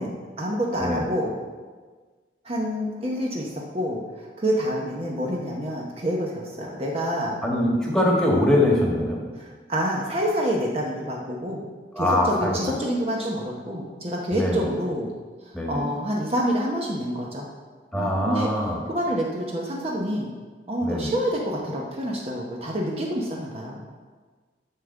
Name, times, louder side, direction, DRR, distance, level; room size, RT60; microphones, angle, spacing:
voice 1, 0.0-1.3 2.4-7.4 9.4-11.6 12.0-15.1 15.6-17.4 17.9-18.5 18.9-20.3 20.7-23.8, equal, 35° right, -2 dB, 0.9 m, -27 dB
voice 2, 7.4-9.2 12.0-12.8 14.3-14.7 15.5-15.8 17.9-18.8 20.8-21.1, left 1 dB, 5° left, -3 dB, 1.6 m, -23 dB
9.8 x 3.7 x 7.0 m, 1.4 s
head